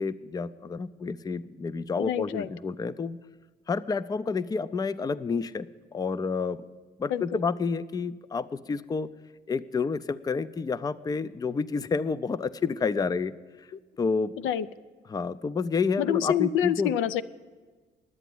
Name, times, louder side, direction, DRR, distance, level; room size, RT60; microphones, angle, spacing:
voice 1, 0.0-3.2 3.7-5.7 5.9-6.6 7.0-9.1 9.5-13.4 14.0-14.3 15.1-16.9, left 5 dB, 20° left, 16 dB, 0.4 m, -29 dB
voice 2, 2.0-2.5 7.1-7.4 14.4-14.7 16.0-17.2, left 9 dB, 85° left, 14 dB, 0.4 m, -27 dB
11.0 x 8.1 x 9.2 m, 1.4 s
cardioid pair, 90°, 20 cm